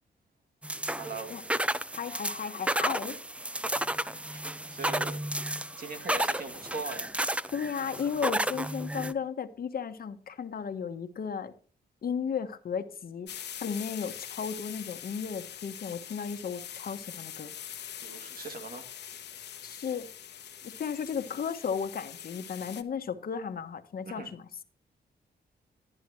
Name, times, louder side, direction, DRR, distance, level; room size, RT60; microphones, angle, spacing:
sound 1, 0.6-9.1, right 1 dB, 5° right, 0.5 m, -32 dB
voice 1, 1.0-1.4 3.1-3.2 4.3-4.4 4.7-5.3 5.8-7.2 18.0-18.9 24.1-24.3, right 3 dB, 55° right, 2.6 m, -40 dB
voice 2, 1.9-3.2 7.5-11.5 12.0-17.5 19.6-20.1 20.6-24.6, left 6 dB, 60° left, 1.1 m, -35 dB
sound 2, 13.3-22.8, left 10 dB, 90° left, 1.0 m, -43 dB
12.5 x 11.0 x 3.1 m
cardioid pair, 95°, 17 cm